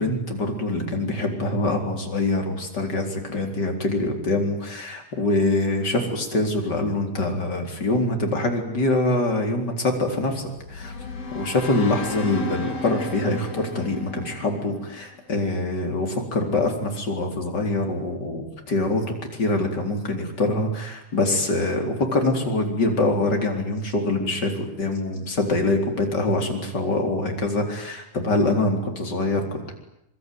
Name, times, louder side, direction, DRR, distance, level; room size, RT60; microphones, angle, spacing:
voice 1, 0.0-10.4 10.7-10.9 11.3-29.7, left 2 dB, 25° left, 3 dB, 4.2 m, -24 dB
sound 1, 10.5-15.5, left 3 dB, 55° left, 6.7 m, -35 dB
26.0 x 24.0 x 9.5 m, 0.79 s
omnidirectional pair, 5.3 m